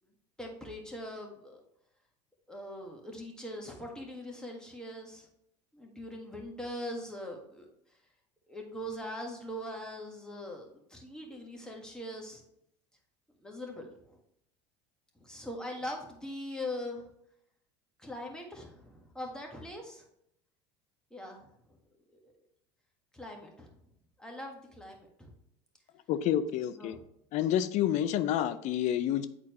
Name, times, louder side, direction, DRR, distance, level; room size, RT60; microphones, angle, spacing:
voice 1, 0.4-1.6 2.5-5.3 5.7-7.7 8.5-12.4 13.4-14.2 15.1-17.1 18.0-20.0 21.1-21.8 22.2-22.3 23.1-23.7 24.2-25.3 26.7-27.0, left 1 dB, 5° left, 0 dB, 1.7 m, -42 dB
voice 2, 26.1-27.0 27.3-29.3, left 10 dB, 55° left, 13 dB, 0.6 m, -29 dB
8.6 x 4.1 x 3.1 m, 0.75 s
hypercardioid pair, 85°, 15 cm